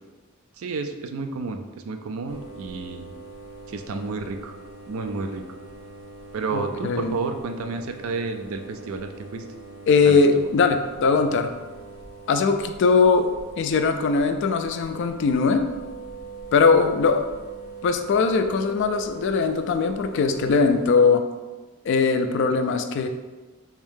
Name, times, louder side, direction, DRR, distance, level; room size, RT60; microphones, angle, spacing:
voice 1, 0.6-3.1 3.7-4.6 4.9-5.4 6.3-9.5 10.0-10.5, right 4 dB, 65° right, 7 dB, 0.4 m, -31 dB
sound 1, 2.3-20.9, right 4 dB, 85° right, 0.7 m, -42 dB
voice 2, 6.5-7.2 9.9-11.5 12.3-13.3 13.6-15.6 16.5-17.3 17.8-21.2 21.9-23.1, left 4 dB, 55° left, 7 dB, 0.3 m, -20 dB
3.5 x 2.7 x 3.5 m, 1.2 s
head